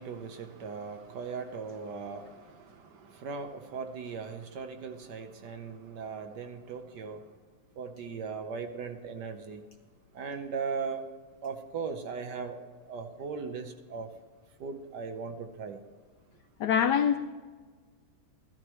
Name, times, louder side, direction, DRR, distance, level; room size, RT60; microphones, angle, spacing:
voice 1, 0.0-7.2 7.8-9.6 10.1-11.0 11.4-14.1 14.6-15.8, right 5 dB, 60° right, 7 dB, 1.3 m, -38 dB
voice 2, 16.6-17.2, left 8 dB, 85° left, 9 dB, 0.9 m, -24 dB
14.5 x 13.0 x 3.1 m, 1.5 s
omnidirectional pair, 2.3 m